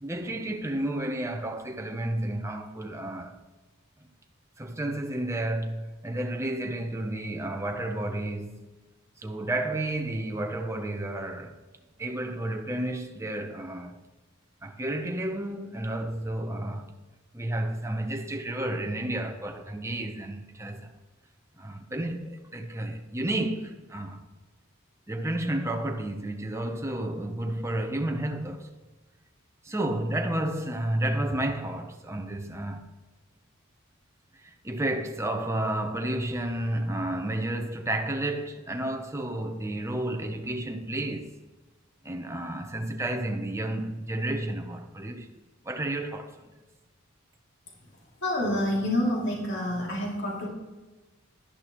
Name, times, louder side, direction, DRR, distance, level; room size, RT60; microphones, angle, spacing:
voice 1, 0.0-3.4 4.6-8.8 9.2-11.6 12.0-14.0 14.6-17.0 17.3-20.9 21.6-24.3 25.1-28.7 29.6-32.8 34.3-41.4 42.0-45.3 45.6-46.4, right 1 dB, 15° right, 0.8 m, -31 dB
voice 2, 48.2-50.5, left 1 dB, 55° left, 2.7 m, -27 dB
11.5 x 10.5 x 3.1 m
head